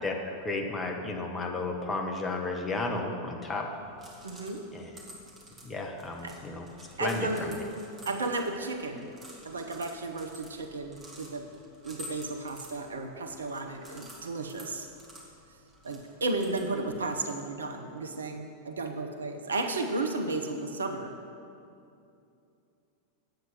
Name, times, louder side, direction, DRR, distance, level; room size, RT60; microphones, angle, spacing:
voice 1, 0.0-3.7 4.7-4.9 5.6-6.7 7.0-7.7, left 3 dB, 15° left, 2 dB, 1.1 m, -33 dB
sound 1, 3.7-17.0, equal, 15° right, 2.0 m, -51 dB
voice 2, 4.2-4.6 6.2-6.4 7.0-7.5 8.1-9.1 9.4-11.4 11.8-14.9 15.8-21.1, right 2 dB, 70° right, 5 dB, 0.8 m, -33 dB
9.2 x 8.0 x 5.5 m, 2.6 s
figure-of-eight pair, 90°, 0 cm